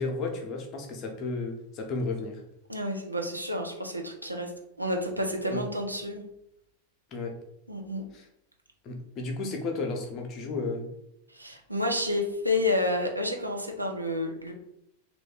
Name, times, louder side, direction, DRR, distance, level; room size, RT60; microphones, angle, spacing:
voice 1, 0.0-2.4 5.5-5.6 7.1-7.3 8.1-8.2 8.8-10.9, left 3 dB, 35° left, 3 dB, 0.7 m, -33 dB
voice 2, 2.7-4.5 4.8-6.2 7.7-8.0 11.3-14.5, left 1 dB, 85° right, 2 dB, 0.6 m, -30 dB
3.1 x 2.5 x 3.7 m, 0.80 s
figure-of-eight pair, 90°, 0 cm